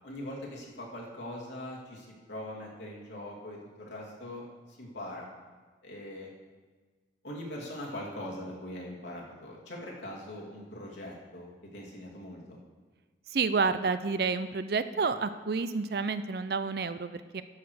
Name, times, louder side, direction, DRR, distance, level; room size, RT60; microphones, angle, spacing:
voice 1, 0.0-5.3 5.8-6.3 7.2-12.6, left 1 dB, 85° left, -3 dB, 2.4 m, -42 dB
voice 2, 13.3-17.4, right 4 dB, 55° right, 12 dB, 0.4 m, -29 dB
13.0 x 4.9 x 6.3 m, 1.4 s
head